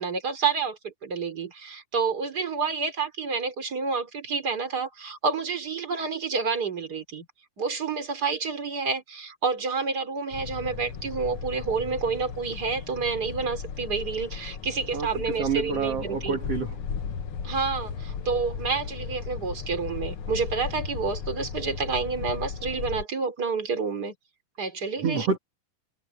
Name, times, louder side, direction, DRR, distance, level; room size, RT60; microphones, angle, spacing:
voice 1, 0.0-7.3 7.6-16.4 17.4-24.1 24.6-25.3, right 5 dB, 25° right, 3.9 m, -29 dB
sound 1, 10.3-23.0, left 6 dB, 65° left, 1.4 m, -36 dB
voice 2, 14.9-16.8 25.0-25.4, right 5 dB, 45° right, 3.1 m, -28 dB
omnidirectional pair, 4.3 m